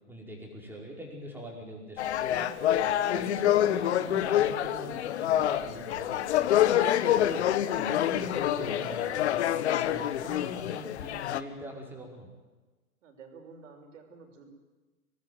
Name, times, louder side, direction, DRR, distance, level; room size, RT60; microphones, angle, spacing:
voice 1, 0.1-2.5 3.1-6.7 7.1-7.4 7.7-9.4 9.8-12.3, equal, 5° right, 0 dB, 5.1 m, -41 dB
sound 1, 2.0-11.4, left 11 dB, 45° left, 1.3 m, -27 dB
voice 2, 13.0-14.5, right 5 dB, 55° right, 5 dB, 6.4 m, -50 dB
24.5 x 19.0 x 9.5 m, 1.2 s
hypercardioid pair, 135°, 45 cm